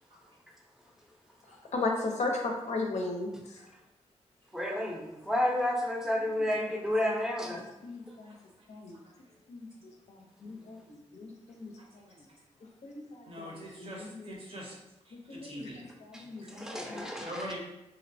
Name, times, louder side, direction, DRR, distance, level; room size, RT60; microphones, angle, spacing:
voice 1, 1.5-3.6 7.8-8.3 8.7-9.0 9.5-9.7 10.1-12.1 12.8-14.4 15.1-15.7 16.0-17.0, left 3 dB, 70° left, 1 dB, 0.5 m, -37 dB
voice 2, 4.5-7.6 16.1-17.5, left 1 dB, 5° right, -1 dB, 0.6 m, -31 dB
voice 3, 8.3-8.7 13.3-14.8 15.1-15.8 16.2-16.7 17.2-17.6, equal, 50° right, -2 dB, 0.8 m, -43 dB
2.7 x 2.0 x 2.6 m, 0.94 s
cardioid pair, 55°, 12 cm